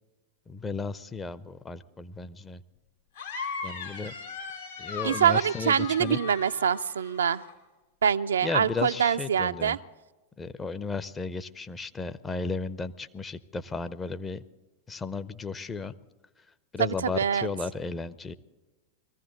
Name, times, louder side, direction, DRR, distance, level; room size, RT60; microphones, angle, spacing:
voice 1, 0.5-2.6 3.6-4.1 4.8-6.2 8.4-9.8 10.4-14.4 14.9-15.9 16.7-18.3, left 4 dB, 15° left, 12 dB, 0.6 m, -34 dB
sound 1, 3.2-7.5, left 5 dB, 70° left, 3.1 m, -38 dB
voice 2, 5.0-7.4 8.0-9.8 16.8-17.5, right 8 dB, 70° right, 10 dB, 0.4 m, -25 dB
21.5 x 15.0 x 3.9 m, 1.2 s
figure-of-eight pair, 90°, 0 cm